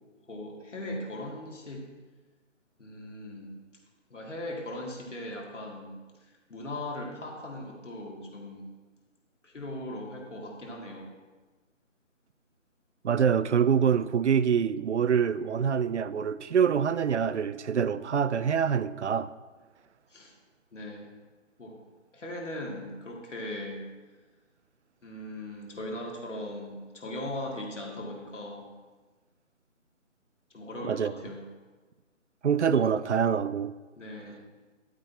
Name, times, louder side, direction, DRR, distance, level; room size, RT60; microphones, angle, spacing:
voice 1, 0.3-1.9 2.8-3.5 4.1-8.7 9.4-11.1 20.1-20.3 20.7-21.1 21.6-21.7 22.1-23.8 25.0-28.7 30.5-31.4 34.0-34.4, left 1 dB, 70° left, 2.5 m, -39 dB
voice 2, 13.0-19.3 30.8-31.1 32.4-33.7, right 7 dB, 65° right, 0.5 m, -25 dB
12.0 x 8.8 x 2.8 m
figure-of-eight pair, 170°, 38 cm